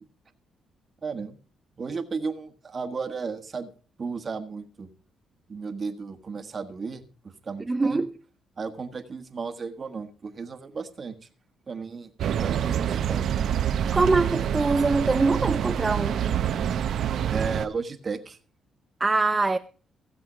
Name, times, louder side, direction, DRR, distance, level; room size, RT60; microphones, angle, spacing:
voice 1, 1.0-1.4 1.8-3.7 4.0-4.9 5.5-8.0 8.6-11.2 11.7-12.1 12.4-13.3 17.3-18.4, right 5 dB, 40° right, 1.4 m, -34 dB
voice 2, 7.7-8.1 13.8-16.2 19.0-19.6, right 3 dB, 20° right, 0.6 m, -23 dB
sound 1, 12.2-17.7, right 9 dB, 70° right, 0.8 m, -26 dB
16.5 x 7.7 x 5.0 m
cardioid pair, 90°, 0 cm